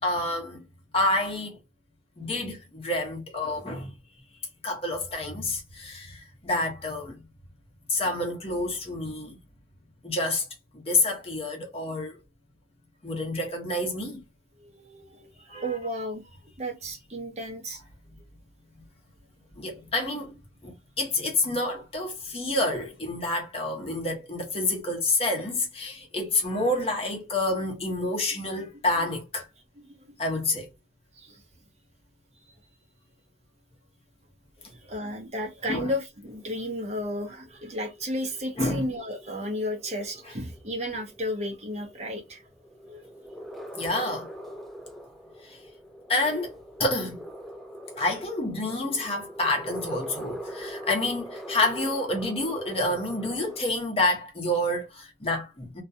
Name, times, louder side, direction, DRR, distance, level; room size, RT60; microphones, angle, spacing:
voice 1, 0.0-0.6 0.9-1.6 2.2-3.9 4.6-7.2 7.9-9.4 10.0-10.4 10.7-12.2 13.0-14.2 15.5-15.7 19.6-29.5 30.2-30.7 35.7-35.9 38.6-38.9 43.8-44.3 45.4-45.6 46.1-46.5 46.8-47.2 48.0-55.8, left 2 dB, 35° left, 0.9 m, -28 dB
voice 2, 14.6-16.3 16.6-17.8 30.0-30.2 31.1-31.4 34.6-42.4 42.8-43.1, equal, 40° right, 0.7 m, -33 dB
sound 1, 36.3-53.6, equal, ahead, 0.3 m, -42 dB
2.3 x 2.2 x 2.6 m
head